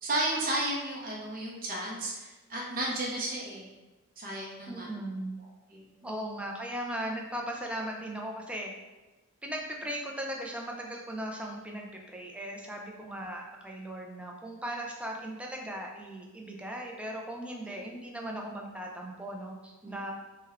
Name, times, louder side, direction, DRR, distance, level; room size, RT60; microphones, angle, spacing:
voice 1, 0.0-3.7 4.2-4.9 5.7-6.2 13.2-13.3 17.7-17.8 19.8-20.0, right 1 dB, 40° right, -3 dB, 0.7 m, -33 dB
voice 2, 4.7-5.4 6.0-8.7 9.4-20.1, right 1 dB, 5° right, 0 dB, 0.4 m, -38 dB
3.3 x 2.2 x 3.4 m, 1.1 s
head